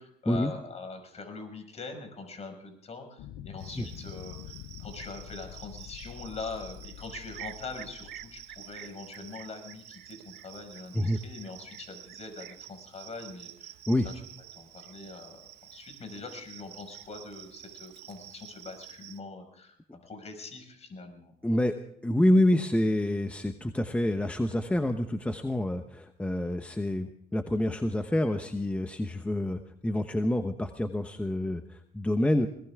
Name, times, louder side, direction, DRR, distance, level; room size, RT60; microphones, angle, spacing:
voice 1, 0.0-13.7 14.0-14.1 14.5-15.4 15.7-21.3, left 3 dB, 40° left, 5 dB, 5.8 m, -43 dB
sound 1, 3.2-8.9, left 12 dB, 85° left, 0.7 m, -46 dB
Cricket, 3.6-19.2, right 13 dB, 75° right, 1.0 m, -48 dB
voice 2, 21.4-21.7 22.0-32.5, left 1 dB, 5° left, 7 dB, 1.0 m, -27 dB
21.5 x 18.5 x 3.6 m, 0.70 s
cardioid pair, 110°, 17 cm